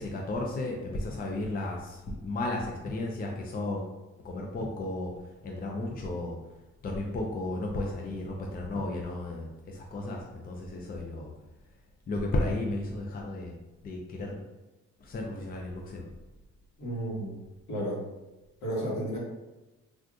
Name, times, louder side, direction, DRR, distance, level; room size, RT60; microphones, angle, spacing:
voice 1, 0.0-3.9 4.2-5.1 5.4-6.4 6.8-11.3 12.1-13.6 13.8-14.4 15.0-16.0, left 2 dB, 30° left, 0 dB, 0.5 m, -34 dB
voice 2, 16.8-17.4 17.7-18.0 18.6-19.2, right 1 dB, 65° left, -5 dB, 1.4 m, -32 dB
3.5 x 2.5 x 2.4 m, 1.1 s
cardioid pair, 90°, 30 cm